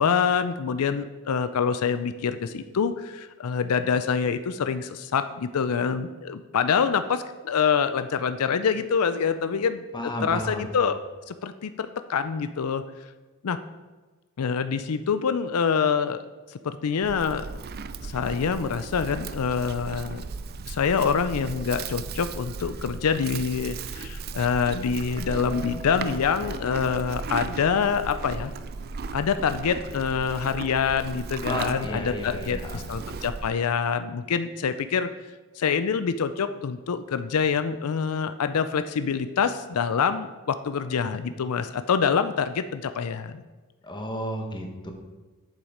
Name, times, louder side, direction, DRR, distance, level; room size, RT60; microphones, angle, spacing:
voice 1, 0.0-11.0 11.3-12.8 13.4-13.6 14.4-17.4 18.0-20.2 20.7-28.5 29.1-35.1 35.6-43.4, left 6 dB, 80° left, 11 dB, 0.5 m, -26 dB
voice 2, 9.9-10.7 31.4-32.8 43.8-44.9, equal, 20° left, 3 dB, 1.4 m, -32 dB
Livestock farm animals working animals, 17.0-33.5, right 4 dB, 45° right, 0.4 m, -36 dB
Shepard Tone, 25.0-30.0, right 1 dB, 60° right, 1.7 m, -43 dB
8.3 x 7.1 x 5.0 m, 1.3 s
head